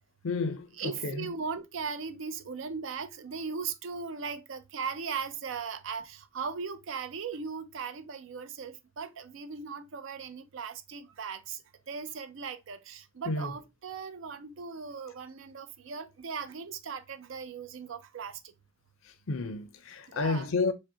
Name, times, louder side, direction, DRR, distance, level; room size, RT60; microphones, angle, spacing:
voice 1, 0.2-1.3 13.3-13.5 19.3-20.7, left 3 dB, 80° left, 0.5 m, -31 dB
voice 2, 0.8-11.6 11.9-18.4 20.1-20.5, right 5 dB, 65° right, 0.5 m, -38 dB
4.9 x 2.1 x 2.7 m
head